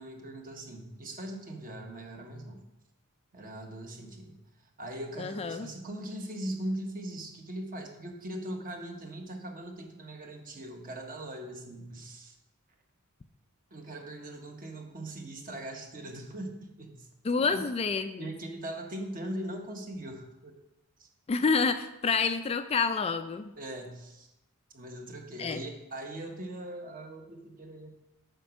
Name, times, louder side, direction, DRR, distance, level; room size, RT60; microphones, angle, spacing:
voice 1, 0.0-2.6 3.3-4.4 4.8-12.3 13.7-17.1 17.4-17.6 18.2-20.5 21.0-21.1 23.6-24.3 24.7-27.9, right 1 dB, 40° right, 3 dB, 1.3 m, -40 dB
voice 2, 5.2-5.7 17.2-18.3 21.3-23.5 25.4-25.6, left 5 dB, 30° left, 9 dB, 0.3 m, -28 dB
7.7 x 5.2 x 6.3 m, 0.94 s
head